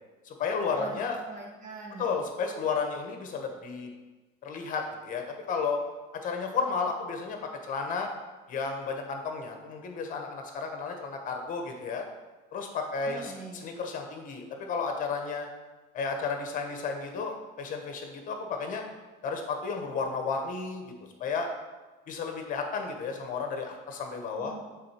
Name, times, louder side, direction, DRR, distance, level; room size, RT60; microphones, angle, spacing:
voice 1, 0.2-1.2 2.0-3.9 4.4-5.8 6.2-8.1 8.5-12.0 12.5-13.3 13.6-15.5 15.9-18.8 19.2-20.8 21.2-21.5 22.1-24.5, left 5 dB, 40° left, 4 dB, 1.3 m, -32 dB
voice 2, 1.3-2.1 13.1-13.7 24.4-24.6, right 3 dB, 40° right, -2 dB, 2.1 m, -42 dB
7.6 x 3.9 x 5.9 m, 1.2 s
cardioid pair, 135°, 20 cm